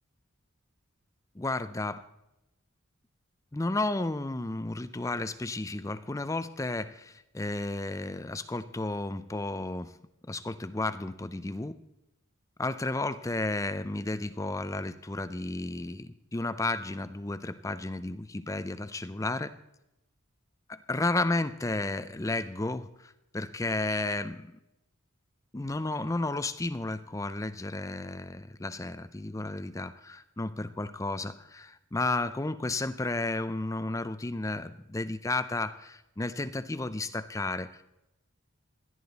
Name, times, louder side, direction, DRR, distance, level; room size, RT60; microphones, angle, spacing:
voice 1, 1.4-2.0 3.5-10.0 10.3-11.8 12.6-19.5 20.7-24.5 25.5-37.8, left 2 dB, 15° left, 12 dB, 0.4 m, -33 dB
17.0 x 11.0 x 4.1 m, 0.88 s
head